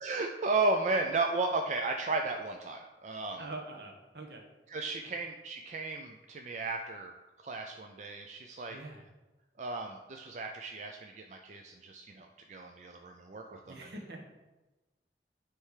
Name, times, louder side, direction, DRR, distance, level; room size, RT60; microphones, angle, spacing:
voice 1, 0.0-3.4 4.7-8.8 9.6-13.8, right 3 dB, 40° right, 3 dB, 0.4 m, -34 dB
voice 2, 3.4-4.4 8.7-9.0 13.5-14.3, right 2 dB, 70° right, 1 dB, 1.2 m, -44 dB
9.5 x 3.3 x 4.8 m, 1.1 s
head